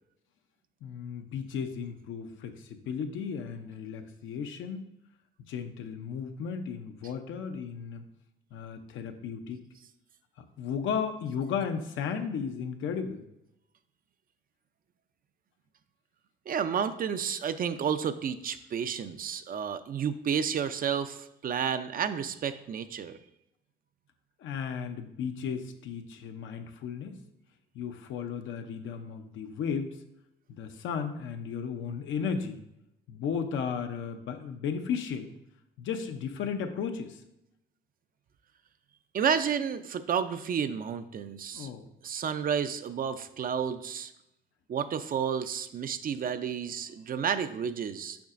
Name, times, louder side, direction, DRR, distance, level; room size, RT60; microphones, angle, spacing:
voice 1, 0.8-4.8 5.5-8.0 8.5-9.6 10.6-13.2 24.4-27.2 27.7-29.9 30.5-32.6 33.1-35.3 35.8-37.2 41.5-41.8, left 6 dB, 80° left, 6 dB, 0.7 m, -34 dB
voice 2, 16.5-23.2 39.1-41.7 42.0-44.1 44.7-48.2, right 7 dB, 45° right, 11 dB, 0.4 m, -31 dB
7.0 x 5.5 x 2.5 m, 0.84 s
cardioid pair, 90°, 20 cm